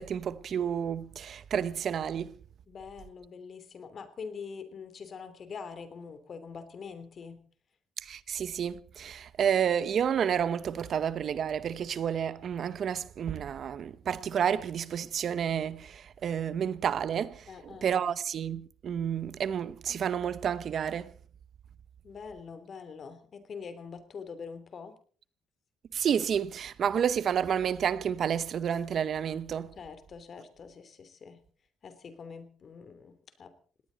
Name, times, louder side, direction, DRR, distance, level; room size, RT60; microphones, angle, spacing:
voice 1, 0.0-2.4 8.0-21.1 25.9-29.7, right 8 dB, 60° right, 0.9 m, -30 dB
voice 2, 2.7-7.4 17.5-17.9 22.0-24.9 29.8-31.4 31.8-33.5, left 5 dB, 50° left, 3.1 m, -44 dB
19.5 x 18.0 x 4.1 m
cardioid pair, 90°, 0 cm